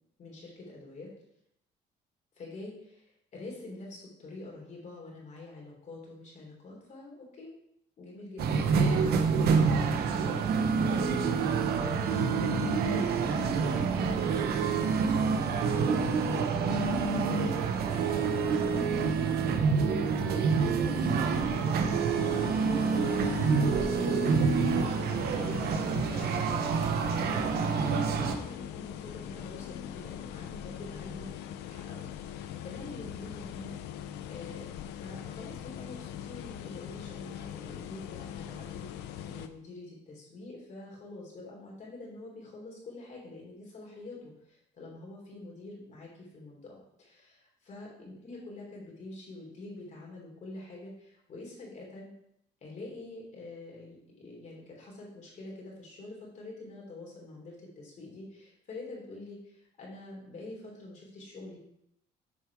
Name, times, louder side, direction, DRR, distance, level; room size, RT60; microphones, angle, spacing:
voice 1, 0.2-1.1 2.4-7.5 8.0-14.2 14.6-17.3 17.8-27.8 28.0-33.8 34.3-34.7 35.0-52.1 52.6-61.6, left 2 dB, 45° left, -2 dB, 3.2 m, -46 dB
sound 1, 8.4-28.4, right 5 dB, 70° right, 0.9 m, -27 dB
sound 2, 22.1-39.5, left 10 dB, 85° left, 0.5 m, -41 dB
7.3 x 4.7 x 4.7 m, 0.76 s
cardioid pair, 110°, 17 cm